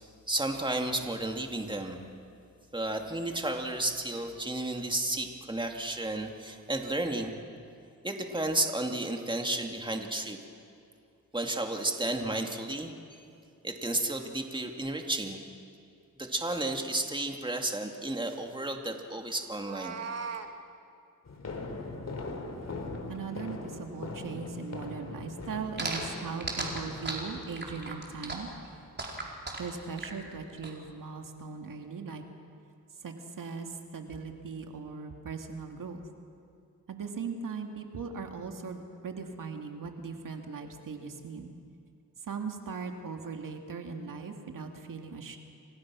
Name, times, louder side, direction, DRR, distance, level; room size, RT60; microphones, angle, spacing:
voice 1, 0.3-2.0 2.7-7.4 8.0-10.4 11.3-13.2 13.6-15.4 16.2-20.0, right 2 dB, 15° right, 3 dB, 2.5 m, -32 dB
Meow, 19.4-20.5, right 5 dB, 50° right, 2.1 m, -38 dB
sound 1, 21.3-26.9, left 3 dB, 50° left, 3.7 m, -40 dB
voice 2, 23.1-28.5 29.6-32.2 33.0-36.0 36.9-41.5 42.2-45.4, right 5 dB, 70° right, 4 dB, 2.3 m, -39 dB
sound 2, 25.8-30.7, right 2 dB, 30° right, 4.7 m, -36 dB
30.0 x 24.5 x 6.3 m, 2.4 s
cardioid pair, 80°, 33 cm